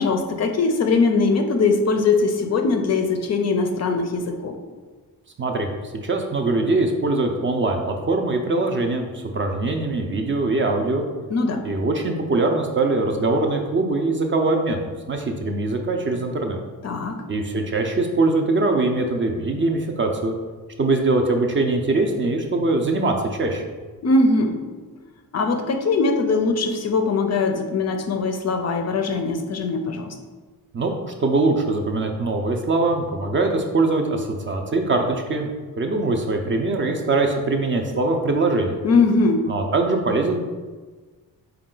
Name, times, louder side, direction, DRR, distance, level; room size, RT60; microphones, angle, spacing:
voice 1, 0.0-4.6 11.3-11.6 16.8-17.2 24.0-24.6 25.3-30.1 38.8-39.5, left 3 dB, 45° left, 5 dB, 0.4 m, -21 dB
voice 2, 5.4-5.7 6.0-9.1 9.3-11.1 11.6-16.6 17.3-20.3 20.8-23.6 30.7-35.5 35.8-38.8 39.5-40.4, right 2 dB, 35° right, 3 dB, 0.4 m, -22 dB
4.0 x 2.3 x 3.7 m, 1.4 s
cardioid pair, 100°, 38 cm